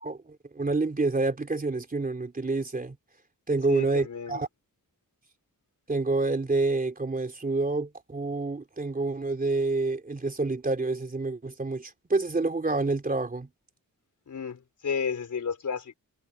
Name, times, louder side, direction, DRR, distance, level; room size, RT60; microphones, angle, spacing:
voice 1, 0.0-3.0 3.5-4.5 5.9-13.5, right 3 dB, 25° right, 3.4 m, -28 dB
voice 2, 3.7-4.4 14.3-15.9, left 6 dB, 55° left, 4.7 m, -32 dB
wide cardioid pair, 175°, 35 cm